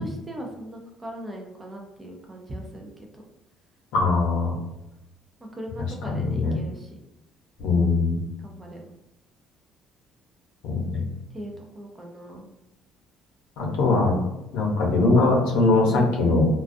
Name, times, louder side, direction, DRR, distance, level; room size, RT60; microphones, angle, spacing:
voice 1, 0.0-3.2 5.5-7.0 8.4-8.9 11.3-12.5, right 1 dB, 15° right, 1 dB, 0.4 m, -39 dB
voice 2, 3.9-4.5 6.0-6.6 7.6-8.2 10.6-11.0 13.6-14.1 14.5-16.5, left 3 dB, 85° left, -1 dB, 0.7 m, -21 dB
2.3 x 2.2 x 2.5 m, 0.93 s
cardioid pair, 165°, 0 cm